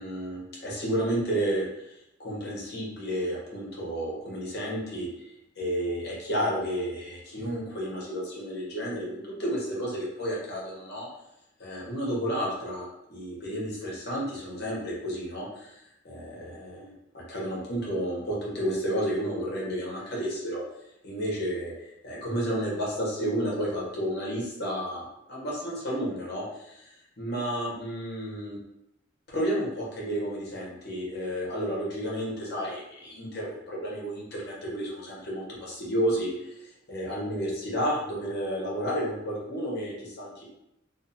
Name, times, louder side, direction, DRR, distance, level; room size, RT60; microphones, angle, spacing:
voice 1, 0.0-1.7 2.2-5.1 5.6-11.1 11.6-15.7 16.0-20.6 21.0-21.7 22.0-26.9 27.2-28.6 29.3-36.3 36.6-40.5, equal, 60° left, -4 dB, 0.9 m, -31 dB
2.5 x 2.5 x 2.6 m, 0.84 s
head